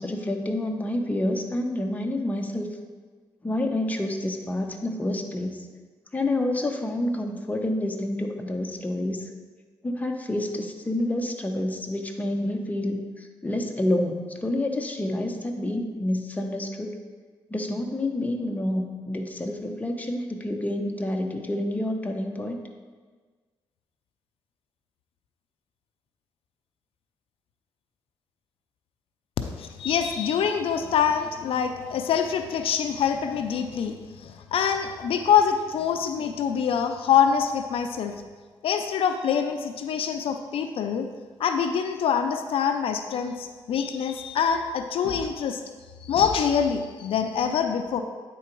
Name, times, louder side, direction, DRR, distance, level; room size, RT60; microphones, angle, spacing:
voice 1, 0.0-2.7 3.4-5.6 6.1-9.3 9.8-17.0 17.5-22.6, left 1 dB, 15° left, 3 dB, 0.8 m, -28 dB
voice 2, 29.4-38.2 38.6-41.1 41.4-45.6 46.0-48.0, left 7 dB, 80° left, 6 dB, 0.5 m, -25 dB
9.1 x 3.9 x 4.5 m, 1.5 s
cardioid pair, 85°, 9 cm